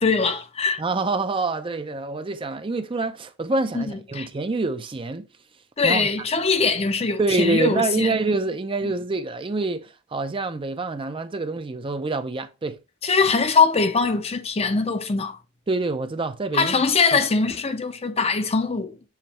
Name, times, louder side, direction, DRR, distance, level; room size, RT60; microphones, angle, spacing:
voice 1, 0.0-0.8 3.7-4.3 5.8-8.1 8.8-8.9 13.0-15.4 16.5-19.0, left 4 dB, 30° left, 0.6 m, -22 dB
voice 2, 0.8-5.3 5.8-6.1 7.2-12.8 15.7-16.8 17.1-17.2, right 3 dB, 25° right, 0.5 m, -26 dB
7.2 x 3.1 x 4.2 m
head